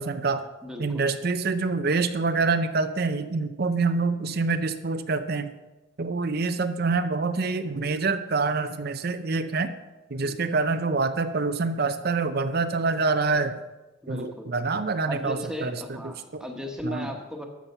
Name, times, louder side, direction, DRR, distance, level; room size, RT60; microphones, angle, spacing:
voice 1, 0.0-0.5 0.8-5.5 6.0-9.8 10.1-13.6 14.1-16.4 16.8-17.1, right 4 dB, 50° right, 10 dB, 0.6 m, -26 dB
voice 2, 0.6-1.1 10.1-10.4 14.0-14.5 15.1-17.4, left 1 dB, 5° right, 3 dB, 1.3 m, -36 dB
13.0 x 7.2 x 5.6 m, 1.1 s
head